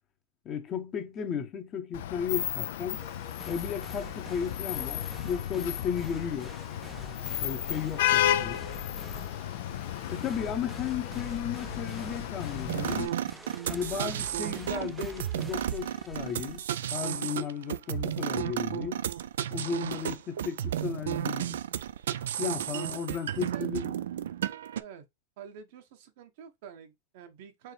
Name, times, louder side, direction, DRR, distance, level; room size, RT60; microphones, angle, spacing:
voice 1, 0.4-3.0 3.5-6.5 7.4-8.6 10.1-13.1 13.7-16.6 16.9-19.0 19.5-21.6 22.4-23.9, left 7 dB, 30° left, 0.9 m, -34 dB
Vehicle horn car horn honking / Traffic noise roadway noise, 1.9-13.1, left 12 dB, 70° left, 0.4 m, -33 dB
sound 1, 3.0-16.7, right 3 dB, 5° right, 0.5 m, -47 dB
sound 2, 12.7-24.8, right 10 dB, 80° right, 0.3 m, -33 dB
voice 2, 23.1-23.7 24.7-25.0 25.4-27.7, right 8 dB, 60° right, 0.9 m, -48 dB
4.4 x 2.6 x 3.3 m
hypercardioid pair, 125°, 0 cm